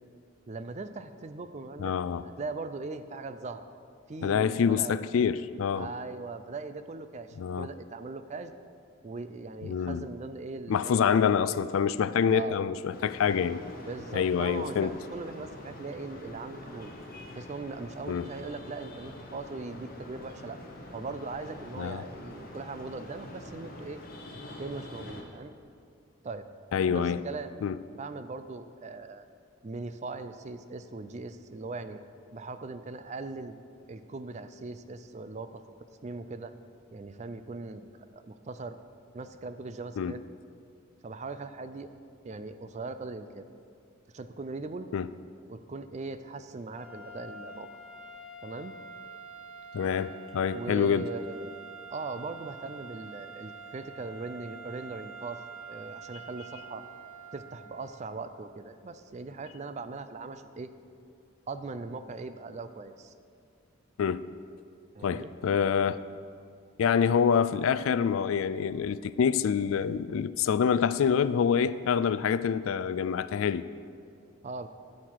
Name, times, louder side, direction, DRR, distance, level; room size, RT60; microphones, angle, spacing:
voice 1, 0.5-1.9 2.2-3.6 4.1-5.0 5.7-8.5 9.0-11.2 12.3-12.6 13.8-17.0 17.4-20.6 20.9-24.0 24.6-25.5 26.2-26.5 26.9-27.6 28.0-29.2 29.6-32.0 32.3-33.6 33.9-35.6 36.0-36.5 36.9-38.8 39.1-40.2 41.0-41.9 42.2-43.5 44.1-44.9 45.5-47.7 48.4-48.8 50.5-51.6 51.9-55.4 55.7-56.9 57.3-60.7 61.5-63.1 64.9-65.3 74.4-74.7, right 3 dB, 35° right, 11 dB, 0.4 m, -40 dB
voice 2, 1.8-2.3 4.2-5.9 7.4-7.7 9.6-10.0 10.7-13.6 14.1-14.9 18.1-18.2 21.8-22.0 26.7-27.2 27.6-27.8 40.0-40.1 44.9-45.1 49.7-51.1 64.0-64.2 65.0-66.0 66.8-73.6, left 7 dB, 80° left, 15 dB, 0.3 m, -26 dB
sound 1, 12.9-25.2, left 1 dB, 45° left, 1.4 m, -45 dB
sound 2, 46.7-58.2, right 4 dB, ahead, 1.4 m, -46 dB
13.5 x 6.5 x 4.6 m, 2.4 s
head